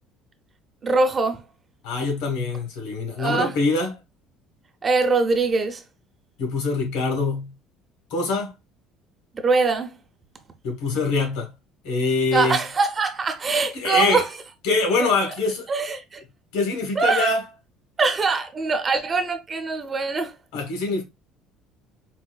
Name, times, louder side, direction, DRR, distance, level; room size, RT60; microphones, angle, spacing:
voice 1, 0.8-1.4 3.2-3.5 4.8-5.8 9.4-9.9 12.3-14.3 15.7-16.2 17.0-17.3 18.0-20.3, right 4 dB, 25° right, 0.6 m, -22 dB
voice 2, 1.8-3.9 6.4-7.5 8.1-8.5 10.6-11.5 11.8-12.6 13.7-14.2 14.6-15.7 16.5-17.5 20.5-21.0, left 3 dB, 90° left, 1.4 m, -24 dB
4.2 x 2.5 x 2.3 m
cardioid pair, 135°, 0 cm